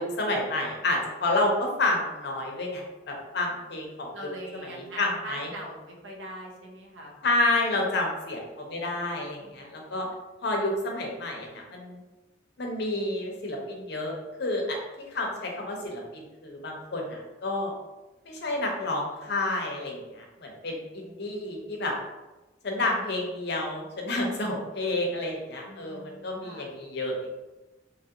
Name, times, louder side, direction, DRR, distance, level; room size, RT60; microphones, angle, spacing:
voice 1, 0.0-4.1 4.7-5.5 7.2-10.1 10.4-12.0 12.6-17.7 18.2-22.0 22.6-27.1, left 2 dB, 60° left, 0 dB, 0.7 m, -30 dB
voice 2, 4.1-7.2 25.7-26.7, right 1 dB, 85° right, 0 dB, 0.7 m, -42 dB
3.0 x 2.4 x 2.8 m, 1.1 s
head